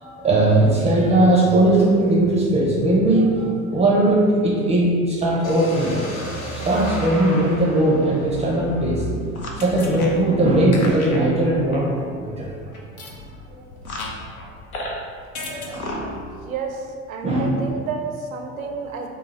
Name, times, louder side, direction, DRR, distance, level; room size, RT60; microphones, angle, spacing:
voice 1, 0.0-6.0 6.6-9.0 9.6-12.5 13.0-13.1 13.5-13.6 15.5-16.1 17.2-17.6, right 1 dB, 15° right, -4 dB, 0.4 m, -19 dB
sound 1, 5.4-9.3, equal, 75° left, 0.9 m, -33 dB
sound 2, 8.9-15.0 15.4-16.3, left 1 dB, 90° left, 0.5 m, -33 dB
voice 2, 16.4-19.1, right 5 dB, 80° right, 3 dB, 0.5 m, -30 dB
3.8 x 2.4 x 2.9 m, 2.1 s
figure-of-eight pair, 70°, 41 cm